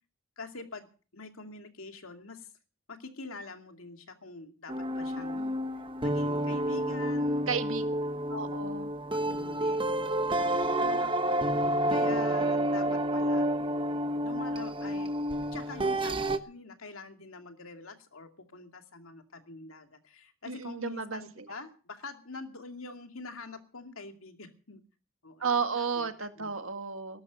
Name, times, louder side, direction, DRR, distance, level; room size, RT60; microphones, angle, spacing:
voice 1, 0.4-0.9 1.1-2.5 2.9-5.5 6.0-7.5 8.4-8.5 9.1-10.1 10.4-11.5 11.9-13.5 14.2-15.1 15.5-24.8 25.2-25.6 26.0-26.5, left 3 dB, 85° left, 5 dB, 2.5 m, -45 dB
sound 1, 4.7-16.4, right 1 dB, 25° right, 1.0 m, -29 dB
voice 2, 5.1-5.5 7.5-7.8 8.3-8.9 20.5-21.5 25.4-27.2, right 5 dB, 75° right, 7 dB, 1.9 m, -33 dB
19.5 x 12.0 x 5.2 m, 0.38 s
head